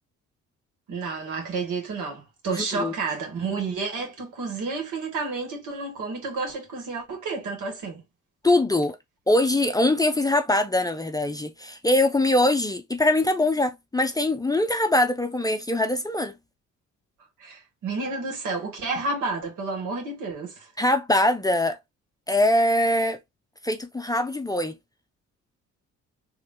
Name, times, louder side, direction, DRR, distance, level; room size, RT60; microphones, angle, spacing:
voice 1, 0.9-8.0 17.4-20.7, right 3 dB, 80° right, 1.9 m, -30 dB
voice 2, 2.5-2.9 8.4-9.0 9.3-16.3 20.8-21.8 22.3-23.2 23.6-24.7, left 1 dB, 10° left, 0.5 m, -22 dB
3.1 x 2.7 x 3.6 m
cardioid pair, 90°, 30 cm